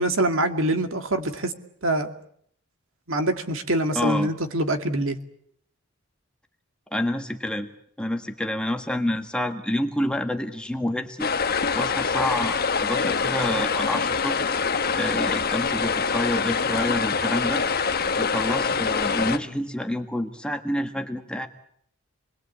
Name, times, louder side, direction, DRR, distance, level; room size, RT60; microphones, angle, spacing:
voice 1, 0.0-1.5 1.8-2.1 3.1-5.2, right 1 dB, 60° right, 6 dB, 2.4 m, -24 dB
voice 2, 3.9-4.3 6.9-7.7 8.0-11.3 11.7-14.4 14.9-17.6 18.2-21.5, left 1 dB, 5° left, 5 dB, 1.5 m, -28 dB
sound 1, 11.2-19.4, left 5 dB, 45° left, 1.4 m, -25 dB
28.0 x 21.5 x 8.6 m, 0.67 s
head